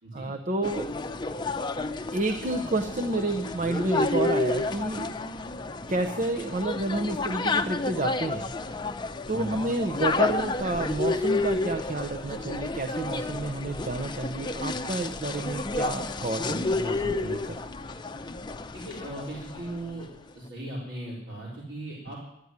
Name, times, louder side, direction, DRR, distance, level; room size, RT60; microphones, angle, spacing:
voice 1, 0.1-0.9 2.1-5.1 5.9-8.5 9.3-17.6, right 2 dB, 40° right, 6 dB, 0.7 m, -30 dB
sound 1, 0.6-19.9, left 3 dB, 25° left, 0.6 m, -31 dB
voice 2, 9.3-9.7 18.7-20.1 20.3-22.2, right 1 dB, 80° right, -6 dB, 3.9 m, -38 dB
12.0 x 9.6 x 9.5 m, 0.80 s
head